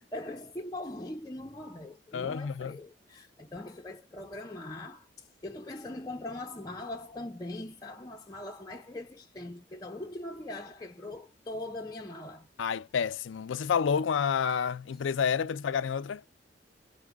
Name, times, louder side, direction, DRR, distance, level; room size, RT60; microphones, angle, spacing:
voice 1, 0.1-5.1 5.4-12.5, left 1 dB, 20° left, 0.5 m, -41 dB
voice 2, 2.1-2.8 12.6-16.2, left 7 dB, 85° left, 0.4 m, -29 dB
4.8 x 2.1 x 3.5 m
head